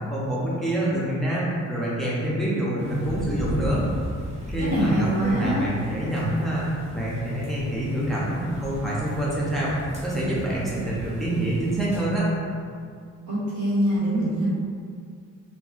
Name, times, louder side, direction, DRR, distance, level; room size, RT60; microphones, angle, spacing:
voice 1, 0.1-3.8 4.5-6.7 6.9-12.3, right 1 dB, ahead, -7 dB, 0.6 m, -26 dB
sound 1, 2.8-12.0, equal, 20° right, 0.9 m, -37 dB
voice 2, 4.6-5.6 13.3-14.5, equal, 70° right, -9 dB, 1.3 m, -24 dB
2.5 x 2.2 x 3.6 m, 2.2 s
cardioid pair, 90°, 30 cm